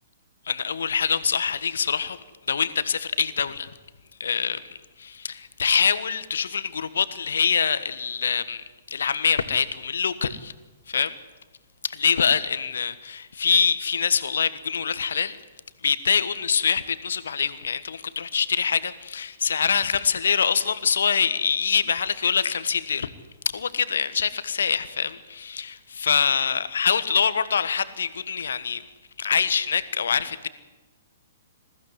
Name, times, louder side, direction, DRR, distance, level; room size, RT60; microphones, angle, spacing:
voice 1, 0.4-2.2 2.5-3.7 4.2-10.5 10.9-11.1 12.0-15.4 15.8-23.1 23.4-28.8 29.2-30.5, left 6 dB, 65° left, 1.3 m, -25 dB
21.0 x 15.5 x 9.8 m
figure-of-eight pair, 115°, 0 cm